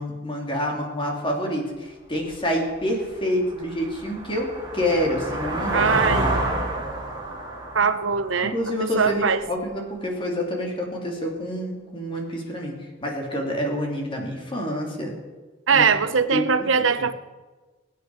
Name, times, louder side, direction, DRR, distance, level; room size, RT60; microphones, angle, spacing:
voice 1, 0.0-5.8 8.4-15.1 15.7-15.9 16.3-16.4, equal, 25° left, 0 dB, 3.0 m, -27 dB
sound 1, 2.3-2.4 2.9-9.5, right 2 dB, 25° right, 3.0 m, -29 dB
voice 2, 5.7-6.2 7.7-8.5 9.0-9.4 15.7-17.1, right 5 dB, 75° right, 12 dB, 0.8 m, -21 dB
23.0 x 9.3 x 4.9 m, 1.3 s
head